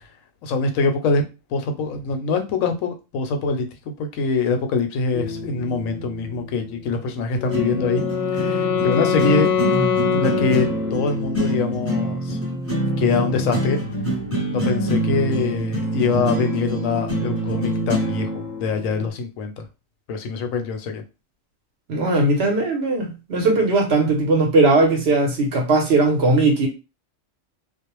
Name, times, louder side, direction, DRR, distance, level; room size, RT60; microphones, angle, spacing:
voice 1, 0.4-1.2 1.5-3.7 4.0-8.1 8.3-9.5 10.1-12.4 13.0-13.8 14.5-19.6 20.1-21.0, left 4 dB, 85° left, 1.0 m, -24 dB
sound 1, 5.1-19.1, right 1 dB, 15° left, 0.7 m, -26 dB
Wind instrument woodwind instrument, 7.4-11.3, left 7 dB, 65° left, 0.7 m, -23 dB
voice 2, 21.9-26.7, right 2 dB, 60° right, 0.9 m, -18 dB
2.5 x 2.0 x 2.9 m
omnidirectional pair, 1.3 m